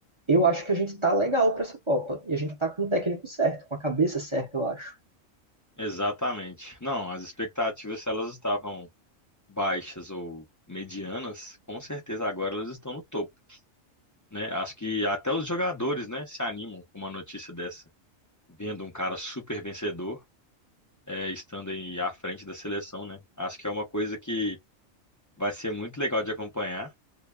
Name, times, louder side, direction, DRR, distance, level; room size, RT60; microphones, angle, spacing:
voice 1, 0.3-4.9, right 2 dB, 30° right, 0.7 m, -26 dB
voice 2, 5.8-8.9 9.5-13.6 14.3-17.8 18.6-20.2 21.1-24.6 25.4-26.9, left 1 dB, 25° left, 0.4 m, -32 dB
2.7 x 2.2 x 2.2 m
omnidirectional pair, 1.4 m